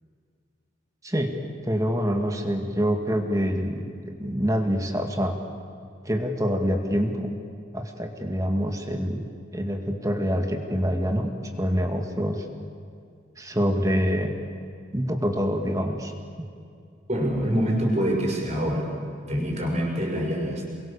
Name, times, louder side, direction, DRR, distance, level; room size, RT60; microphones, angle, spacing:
voice 1, 1.0-1.3 1.6-3.8 4.2-5.4 6.0-7.3 7.7-9.2 9.5-11.3 11.6-12.4 13.4-14.3 14.9-16.1, equal, 15° right, 4 dB, 2.1 m, -25 dB
voice 2, 17.1-18.9 19.3-20.7, equal, 35° right, 0 dB, 5.8 m, -25 dB
28.0 x 22.5 x 7.1 m, 2.3 s
head